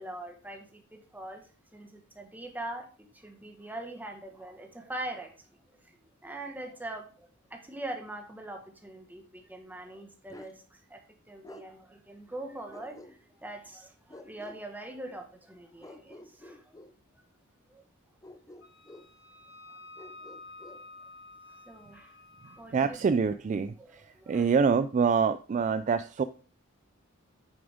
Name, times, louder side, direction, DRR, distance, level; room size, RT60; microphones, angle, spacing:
voice 1, 0.0-1.4 1.7-5.3 5.8-6.0 6.2-11.0 11.3-16.7 17.7-17.8 20.7-20.8 21.7-22.2 22.4-23.0 23.8-24.5, right 1 dB, 10° right, 3 dB, 1.5 m, -42 dB
Bark, 10.3-10.6 11.4-11.7 12.7-13.4 14.1-14.6 15.8-17.0 18.2-19.1 20.0-20.8, left 1 dB, 15° left, 0.6 m, -49 dB
Wind instrument woodwind instrument, 18.6-22.6, left 2 dB, 75° left, 2.0 m, -50 dB
voice 2, 22.7-26.2, right 5 dB, 35° right, 13 dB, 0.3 m, -26 dB
8.7 x 7.0 x 3.6 m, 0.39 s
head